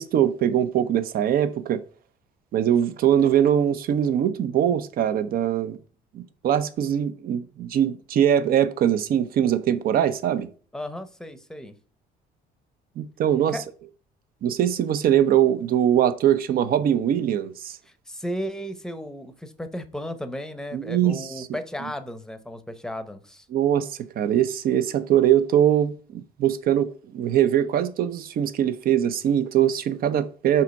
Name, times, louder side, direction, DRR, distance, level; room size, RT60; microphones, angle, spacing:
voice 1, 0.0-1.8 2.5-5.8 6.1-10.5 13.0-13.6 14.4-17.8 20.7-21.5 23.5-30.6, right 10 dB, 60° right, 0.8 m, -22 dB
voice 2, 10.7-11.8 13.5-13.6 17.9-23.5, equal, 5° left, 0.8 m, -34 dB
5.5 x 3.6 x 5.3 m
cardioid pair, 110°, 17 cm